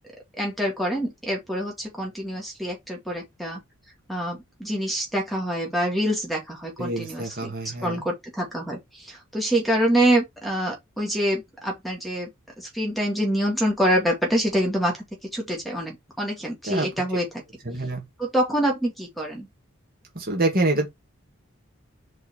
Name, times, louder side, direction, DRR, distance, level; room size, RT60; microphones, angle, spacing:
voice 1, 0.4-3.6 4.1-12.3 12.6-15.0 15.3-17.3 18.2-19.5, right 1 dB, ahead, 2.4 m, -26 dB
voice 2, 6.8-8.0 16.7-16.9 17.7-18.0 20.2-20.9, right 2 dB, 45° right, 2.2 m, -26 dB
4.7 x 4.7 x 4.5 m
head